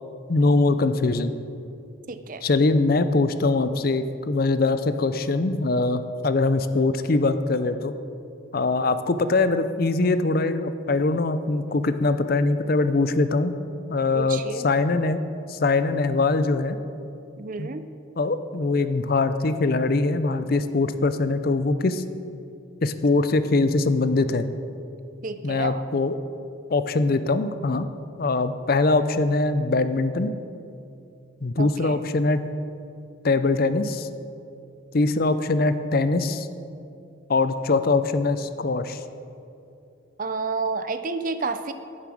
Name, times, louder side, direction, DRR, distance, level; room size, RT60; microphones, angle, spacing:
voice 1, 0.3-1.3 2.4-7.9 8.5-13.6 13.9-15.2 15.5-16.8 17.6-17.7 18.2-22.0 22.8-24.5 25.4-26.2 26.7-27.9 28.2-30.3 31.4-32.4 33.2-34.1 34.9-36.5 37.3-39.0, left 3 dB, 45° left, 11 dB, 0.5 m, -22 dB
voice 2, 2.1-2.4 14.1-14.7 17.4-17.8 25.2-25.8 31.6-32.0 40.2-41.7, right 4 dB, 40° right, 10 dB, 0.5 m, -30 dB
10.5 x 9.4 x 6.3 m, 2.7 s
head